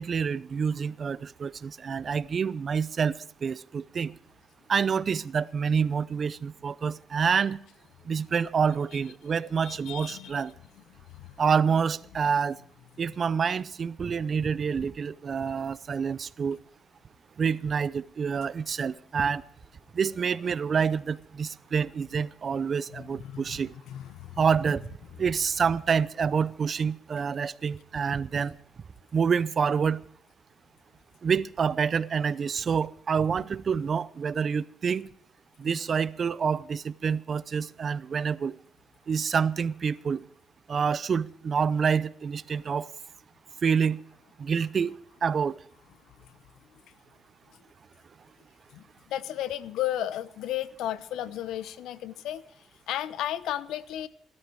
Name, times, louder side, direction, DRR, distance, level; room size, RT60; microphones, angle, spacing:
voice 1, 0.0-3.1 3.4-4.1 4.7-7.6 8.1-10.5 11.4-12.6 13.0-16.6 17.4-19.4 19.9-23.7 24.4-24.8 25.2-28.5 29.1-30.0 31.2-35.1 35.6-38.5 39.1-40.2 40.7-42.9 43.6-44.0 44.4-44.9 45.2-45.5, right 6 dB, 45° right, 0.7 m, -27 dB
voice 2, 9.6-10.4 10.9-11.4 22.9-24.5 33.4-33.5 35.6-35.7 46.2-46.4 48.7-54.1, left 12 dB, 85° left, 0.9 m, -34 dB
18.0 x 13.0 x 4.8 m
cardioid pair, 90°, 0 cm